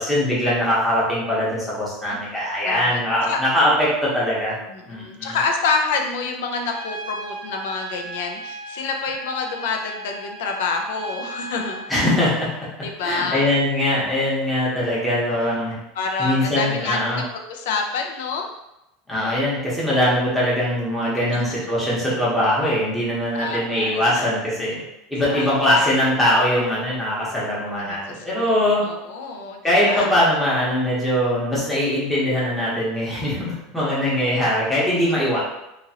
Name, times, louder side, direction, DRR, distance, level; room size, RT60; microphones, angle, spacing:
voice 1, 0.0-4.6 4.9-5.4 11.9-12.5 13.0-15.7 16.2-17.2 19.1-24.8 25.1-28.8 29.6-35.4, left 1 dB, 5° left, -8 dB, 0.9 m, -21 dB
voice 2, 2.6-3.4 4.7-11.9 12.8-13.5 15.9-17.2 17.5-18.5 21.3-21.7 23.3-24.3 25.3-26.1 27.8-28.5 28.8-30.1 35.0-35.1, left 4 dB, 75° left, 3 dB, 0.5 m, -28 dB
Trumpet, 6.7-11.9, right 1 dB, 65° right, 0.7 m, -35 dB
2.9 x 2.5 x 2.7 m, 0.89 s
supercardioid pair, 165°, 0 cm